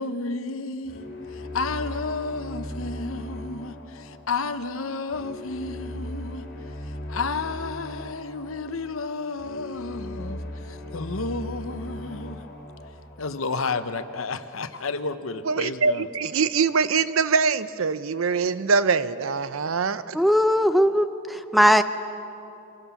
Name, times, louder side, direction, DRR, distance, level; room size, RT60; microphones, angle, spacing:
voice 1, 0.0-6.4 6.8-12.4 13.2-16.1, left 3 dB, 75° left, 10 dB, 1.0 m, -32 dB
sound 1, 0.9-13.9, left 1 dB, 50° left, 2.9 m, -38 dB
voice 2, 15.5-20.2, right 5 dB, 75° right, 14 dB, 0.6 m, -23 dB
voice 3, 20.1-21.8, equal, ahead, 9 dB, 0.6 m, -19 dB
25.0 x 18.0 x 7.0 m, 2.9 s
head